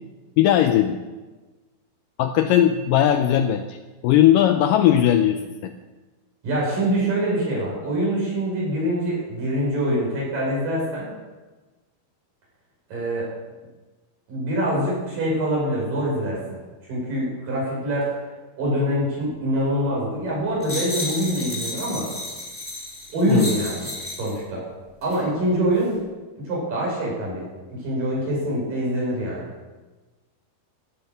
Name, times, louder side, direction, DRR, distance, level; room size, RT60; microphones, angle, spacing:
voice 1, 0.4-1.0 2.2-3.8 4.0-5.7 23.3-23.5, left 11 dB, 80° left, 8 dB, 2.0 m, -18 dB
voice 2, 6.4-11.1 12.9-13.3 14.3-16.4 16.8-18.1 18.6-22.1 23.1-23.9 24.2-24.6 25.0-25.9 26.5-27.4 27.8-29.5, equal, 60° right, -4 dB, 7.4 m, -24 dB
sound 1, 20.6-24.4 25.0-25.2, left 2 dB, 5° left, 2.7 m, -32 dB
15.5 x 9.4 x 6.8 m, 1.2 s
omnidirectional pair, 4.4 m